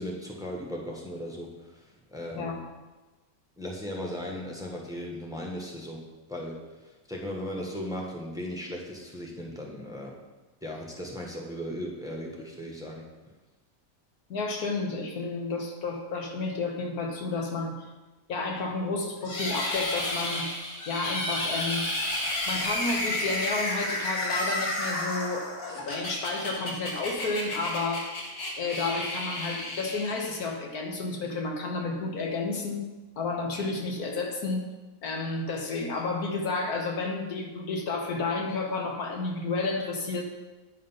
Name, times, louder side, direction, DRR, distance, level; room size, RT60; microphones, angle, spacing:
voice 1, 0.0-1.8 2.1-2.6 3.6-6.0 6.3-6.6 7.1-10.2 10.6-13.0, equal, 5° right, -1 dB, 1.2 m, -37 dB
voice 2, 14.3-17.8 18.3-20.5 20.9-21.9 22.5-28.1 28.6-32.8 33.2-34.7 35.0-40.2, left 3 dB, 90° left, 2 dB, 1.7 m, -31 dB
sound 1, 19.2-30.6, left 1 dB, 70° left, 1.9 m, -32 dB
9.5 x 5.2 x 5.6 m, 1.2 s
omnidirectional pair, 1.5 m